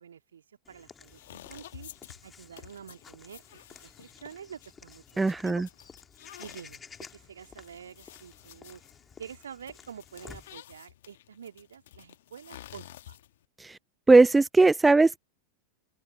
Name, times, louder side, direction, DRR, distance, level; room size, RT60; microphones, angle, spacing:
voice 1, 0.0-1.9 2.2-5.6 6.4-8.8 9.2-13.2, right 8 dB, 65° right, 2.4 m, -47 dB
Walk footsteps / Bird vocalization bird call bird song, 0.6-10.6, left 6 dB, 20° left, 2.8 m, -52 dB
sound 1, 1.0-13.5, left 13 dB, 55° left, 1.6 m, -51 dB
voice 2, 5.2-5.7 13.6-13.8 14.1-15.2, right 3 dB, 10° right, 0.3 m, -19 dB
open air
figure-of-eight pair, 90°, 0 cm